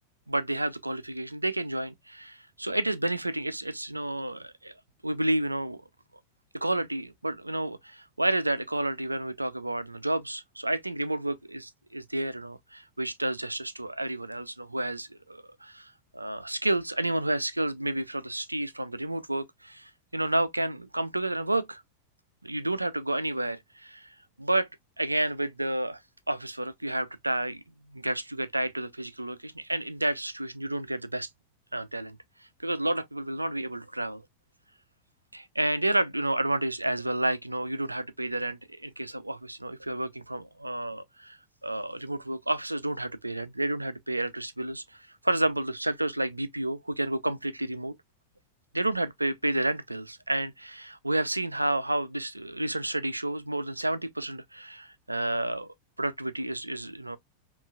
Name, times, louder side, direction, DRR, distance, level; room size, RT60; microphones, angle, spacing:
voice 1, 0.3-4.7 5.0-5.8 6.5-21.8 22.4-24.7 25.0-26.0 26.3-27.6 27.9-31.3 31.7-32.2 32.6-34.2 35.3-47.9 48.7-57.2, right 1 dB, 85° right, 0.3 m, -30 dB
5.3 x 2.4 x 2.2 m
figure-of-eight pair, 90°, 0 cm